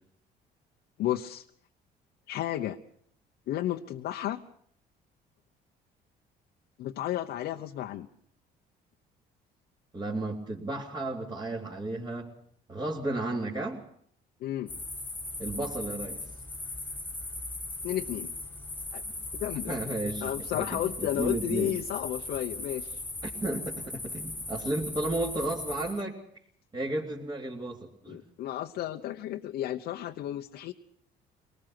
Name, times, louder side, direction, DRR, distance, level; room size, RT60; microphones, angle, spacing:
voice 1, 1.0-1.4 2.3-2.8 3.5-4.4 6.8-8.1 14.4-14.7 17.8-18.3 18.9-19.0 19.3-19.8 20.2-23.0 28.1-30.7, left 12 dB, 75° left, 3 dB, 1.0 m, -32 dB
voice 2, 9.9-12.3 12.7-13.8 15.4-16.2 19.7-21.7 23.2-26.2 26.7-28.2, right 2 dB, 25° right, -5 dB, 3.4 m, -33 dB
sound 1, 14.7-26.0, left 2 dB, 10° left, 2.0 m, -38 dB
24.5 x 19.5 x 6.0 m, 0.64 s
cardioid pair, 110°, 17 cm